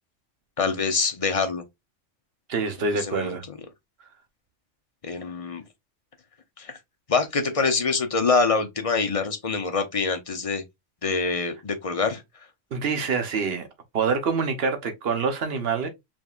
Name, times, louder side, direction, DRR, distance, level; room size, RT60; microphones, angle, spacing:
voice 1, 0.6-1.6 2.9-3.3 5.0-5.6 6.6-6.8 7.1-10.6 11.0-12.2, left 4 dB, 35° left, 0.6 m, -25 dB
voice 2, 2.5-3.4 12.7-13.7 13.9-15.9, right 5 dB, 55° right, 1.1 m, -26 dB
5.0 x 3.5 x 2.4 m
omnidirectional pair, 1.3 m